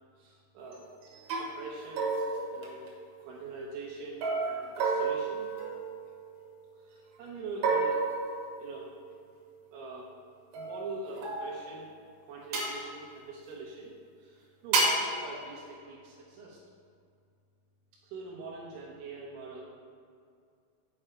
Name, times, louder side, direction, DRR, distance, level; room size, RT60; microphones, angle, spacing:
voice 1, 0.2-2.1 2.5-2.8 3.2-5.5 6.8-8.0 8.6-8.9 9.7-10.1 10.6-11.9 12.3-13.9 14.2-16.6 18.1-19.6, right 3 dB, 85° right, -4 dB, 2.4 m, -43 dB
sound 1, 0.6-0.9 1.3-1.5 2.0-3.3 4.2-6.4 7.6-9.1 10.5-11.8 12.5-12.8 14.7-15.1, right 3 dB, 60° right, 1.9 m, -31 dB
7.7 x 4.4 x 5.0 m, 2.3 s
omnidirectional pair, 3.7 m